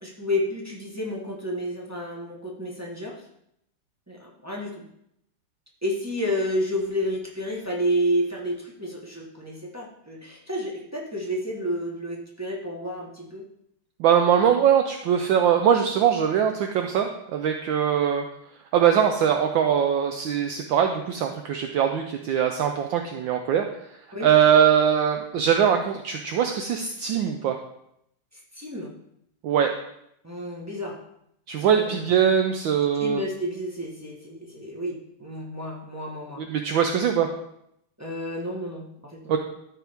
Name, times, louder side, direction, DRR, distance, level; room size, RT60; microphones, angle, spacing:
voice 1, 0.0-3.2 4.1-4.9 5.8-13.4 24.1-24.3 28.3-28.9 30.2-31.0 31.6-32.1 33.0-36.4 38.0-39.4, equal, 15° right, -2 dB, 0.7 m, -30 dB
voice 2, 14.0-18.2 18.7-23.7 24.2-27.6 29.4-29.7 31.5-33.2 36.4-37.3 39.3-39.4, right 8 dB, 70° right, 5 dB, 1.2 m, -21 dB
13.0 x 4.6 x 3.5 m, 0.76 s
omnidirectional pair, 2.4 m